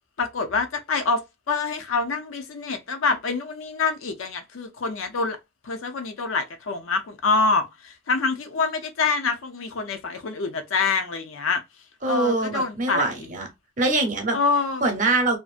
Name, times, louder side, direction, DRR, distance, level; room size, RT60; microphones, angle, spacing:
voice 1, 0.2-5.4 5.6-11.6 12.1-13.1 14.3-14.8, left 4 dB, 85° left, 0.5 m, -26 dB
voice 2, 12.0-13.5 13.8-14.4 14.8-15.4, right 2 dB, 40° right, 0.7 m, -23 dB
2.6 x 2.4 x 2.4 m
head